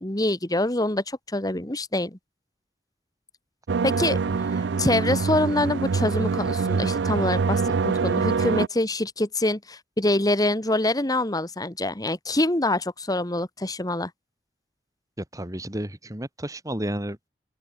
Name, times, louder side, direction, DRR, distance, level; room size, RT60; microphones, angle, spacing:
voice 1, 0.0-2.2 3.8-4.2 4.5-14.1, left 1 dB, 20° left, 1.9 m, -25 dB
sound 1, 3.7-8.7, right 5 dB, 90° right, 0.5 m, -24 dB
voice 2, 15.3-17.3, right 1 dB, 20° right, 2.4 m, -32 dB
open air
head